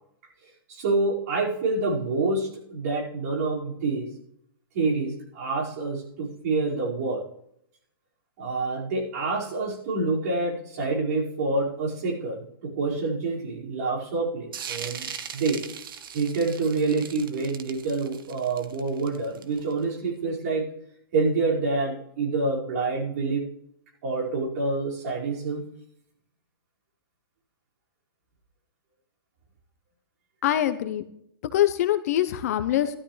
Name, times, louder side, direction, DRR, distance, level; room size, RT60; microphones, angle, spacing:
voice 1, 0.7-4.1 4.7-7.2 8.4-15.7 16.1-20.7 21.1-23.5 24.0-25.6, right 3 dB, 45° right, -4 dB, 5.3 m, -27 dB
sound 1, 14.5-19.8, right 8 dB, 65° right, 1.4 m, -39 dB
voice 2, 30.4-31.0 31.5-33.0, left 12 dB, 40° left, 11 dB, 0.8 m, -23 dB
15.0 x 13.0 x 3.3 m, 0.72 s
hypercardioid pair, 170°, 12 cm